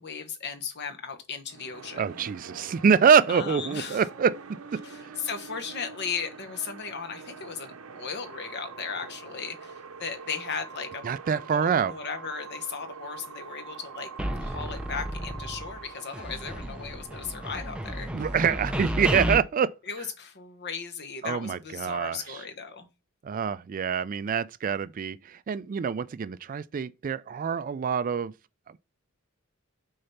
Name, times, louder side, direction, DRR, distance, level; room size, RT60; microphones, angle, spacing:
voice 1, 0.0-2.0 3.3-4.0 4.8-9.7 10.0-11.1 11.5-14.1 14.4-18.1 18.7-18.9 19.9-22.9, left 6 dB, 50° left, 1.3 m, -36 dB
sound 1, 1.5-19.4, right 5 dB, 80° right, 0.8 m, -45 dB
voice 2, 2.0-5.2 11.0-11.9 18.1-19.7 21.2-22.4 23.2-28.3, right 6 dB, 40° right, 0.3 m, -25 dB
sound 2, 14.2-15.9 16.1-19.4, equal, 5° right, 0.7 m, -32 dB
6.6 x 4.0 x 5.8 m
head